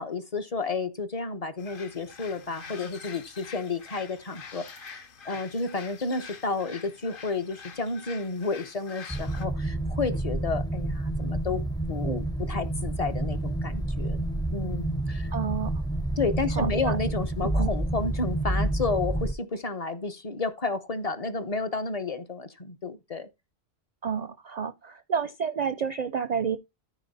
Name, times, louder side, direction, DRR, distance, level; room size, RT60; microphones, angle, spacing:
voice 1, 0.0-14.2 14.5-15.3 16.2-23.3, left 3 dB, 35° left, 0.9 m, -31 dB
sound 1, 1.6-9.5, left 5 dB, 55° left, 1.1 m, -46 dB
sound 2, 9.1-19.3, right 1 dB, 5° left, 0.4 m, -29 dB
voice 2, 15.3-15.7 16.6-17.0 17.6-17.7 24.0-26.6, right 6 dB, 50° right, 0.6 m, -30 dB
13.5 x 4.6 x 4.1 m
omnidirectional pair, 1.1 m